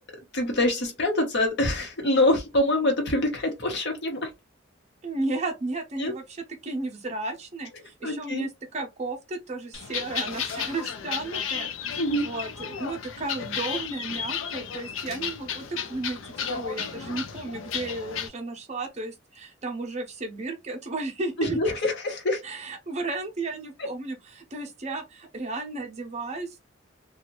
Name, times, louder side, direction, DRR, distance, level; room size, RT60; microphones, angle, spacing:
voice 1, 0.3-4.3 6.0-6.1 8.0-8.4 12.0-12.2 21.4-22.4, left 1 dB, 60° left, 1.0 m, -25 dB
voice 2, 5.0-21.6 22.4-26.6, right 2 dB, 35° right, 0.7 m, -34 dB
sound 1, 9.7-18.3, left 7 dB, 80° left, 0.5 m, -33 dB
2.6 x 2.3 x 3.0 m
head